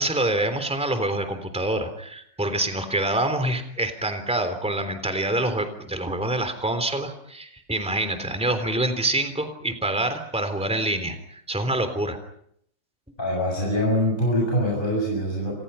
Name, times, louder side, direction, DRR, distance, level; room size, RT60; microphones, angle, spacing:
voice 1, 0.0-12.2, right 1 dB, 5° right, 9 dB, 3.4 m, -26 dB
voice 2, 13.2-15.6, equal, 25° left, -2 dB, 7.8 m, -24 dB
30.0 x 27.5 x 5.7 m, 0.69 s
omnidirectional pair, 2.0 m